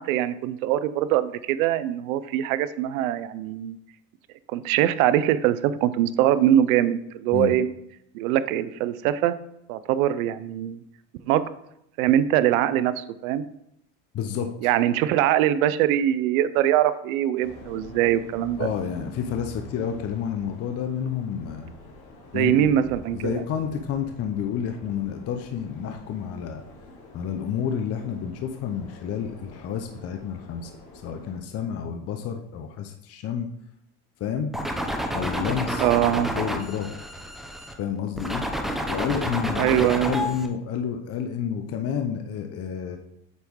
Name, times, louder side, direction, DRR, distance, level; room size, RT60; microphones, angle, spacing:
voice 1, 0.0-3.8 4.5-7.7 8.1-9.4 9.7-10.8 11.3-11.4 12.0-13.4 14.6-18.7 22.3-23.4 35.8-36.3 39.6-40.1, right 12 dB, 85° right, 15 dB, 0.6 m, -22 dB
voice 2, 14.1-14.5 18.6-21.7 22.3-22.7 23.1-26.6 27.1-30.7 31.0-33.5 34.2-34.5 35.1-35.8 36.3-36.9 37.8-38.4 38.9-43.0, left 8 dB, 35° left, 5 dB, 0.7 m, -30 dB
sound 1, 17.4-31.4, left 2 dB, 90° left, 1.8 m, -46 dB
sound 2, 34.5-37.7 38.2-40.5, equal, ahead, 0.7 m, -29 dB
8.2 x 3.5 x 4.6 m, 0.79 s
supercardioid pair, 120°, 41 cm